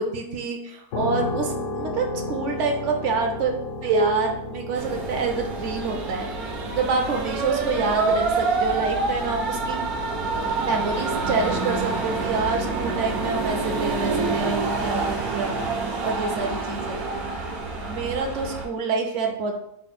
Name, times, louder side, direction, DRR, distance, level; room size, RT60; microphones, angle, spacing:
voice 1, 0.0-3.5 3.8-9.8 10.6-15.6 16.0-17.0 17.9-19.6, right 4 dB, 65° right, 3 dB, 0.9 m, -27 dB
sound 1, 0.9-15.6, left 2 dB, 65° left, 0.9 m, -36 dB
sound 2, 4.7-18.6, right 3 dB, 80° right, 1.2 m, -27 dB
4.3 x 2.1 x 4.1 m, 0.76 s
omnidirectional pair, 1.5 m